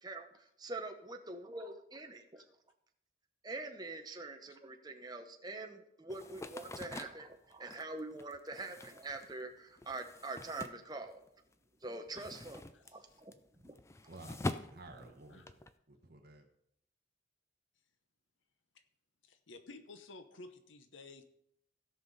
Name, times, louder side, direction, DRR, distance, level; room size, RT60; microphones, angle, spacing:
voice 1, 0.0-2.4 3.4-11.3 11.8-13.3 13.6-13.8, right 2 dB, 20° right, 5 dB, 0.8 m, -44 dB
sound 1, 6.1-11.5 11.8-15.7, left 2 dB, 15° left, 0.3 m, -45 dB
voice 2, 14.1-15.6 15.9-16.4, right 2 dB, 50° right, 2 dB, 1.3 m, -53 dB
voice 3, 19.2-21.2, left 3 dB, 75° left, 9 dB, 0.8 m, -53 dB
16.5 x 5.6 x 4.0 m, 0.74 s
head